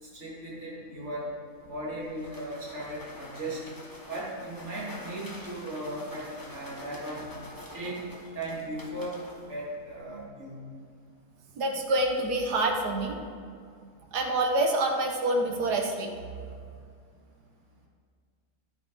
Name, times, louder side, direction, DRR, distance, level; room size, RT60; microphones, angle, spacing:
voice 1, 0.0-1.3 1.6-3.6 4.1-7.3 7.7-8.0 8.3-9.2 9.5-10.6, right 1 dB, 45° right, -7 dB, 2.9 m, -37 dB
sound 1, 1.5-10.2, left 1 dB, 15° left, 0.9 m, -47 dB
voice 2, 11.6-13.2 14.1-16.1, right 2 dB, 85° right, 2 dB, 1.7 m, -27 dB
12.0 x 9.4 x 3.9 m, 2.2 s
omnidirectional pair, 1.7 m